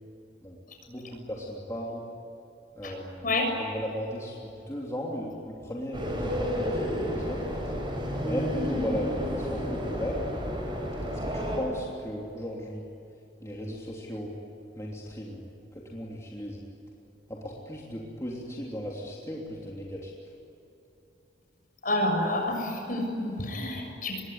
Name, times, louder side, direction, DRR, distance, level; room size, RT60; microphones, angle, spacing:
voice 1, 0.9-2.1 2.8-3.3 3.6-7.5 8.2-10.2 11.2-12.8 13.4-14.3 14.8-15.4 15.7-16.6 17.3-20.1, equal, 15° left, -3 dB, 3.2 m, -36 dB
sound 1, 5.9-11.6, equal, 25° right, 6.8 m, -31 dB
voice 2, 21.8-24.2, left 1 dB, 50° left, 2 dB, 6.9 m, -28 dB
25.5 x 22.0 x 9.6 m, 2.8 s
head